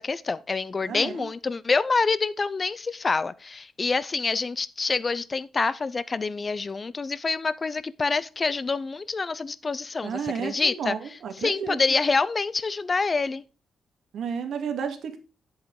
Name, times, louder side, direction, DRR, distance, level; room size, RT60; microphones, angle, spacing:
voice 1, 0.0-11.0 11.4-13.4, left 4 dB, 30° left, 0.6 m, -26 dB
voice 2, 0.8-1.3 10.0-11.8 14.1-15.2, right 7 dB, 75° right, 2.3 m, -32 dB
10.5 x 8.0 x 4.8 m
cardioid pair, 115°, 0 cm